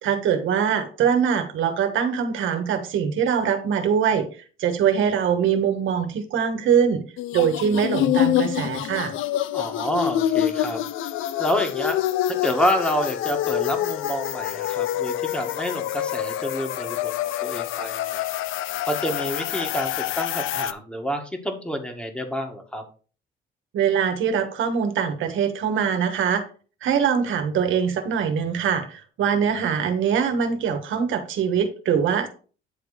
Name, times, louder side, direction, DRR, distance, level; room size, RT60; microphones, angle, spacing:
voice 1, 0.0-4.3 4.6-7.0 7.3-9.1 23.7-26.4 26.8-32.3, right 7 dB, 80° right, 7 dB, 1.4 m, -23 dB
sound 1, 7.2-20.7, left 12 dB, 85° left, 0.5 m, -26 dB
voice 2, 9.5-10.8 11.4-12.0 12.3-17.1 17.4-18.2 18.8-22.8, equal, 5° left, 4 dB, 1.8 m, -28 dB
9.3 x 3.6 x 5.0 m, 0.39 s
cardioid pair, 90°, 20 cm